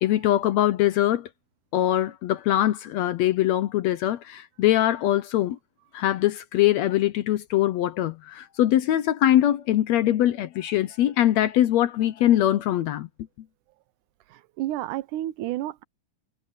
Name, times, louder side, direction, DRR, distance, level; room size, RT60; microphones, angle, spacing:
voice 1, 0.0-1.3 1.7-5.6 5.9-13.1, left 13 dB, 75° left, 1.7 m, -22 dB
voice 2, 14.3-15.8, right 14 dB, 80° right, 2.2 m, -31 dB
omnidirectional pair, 3.6 m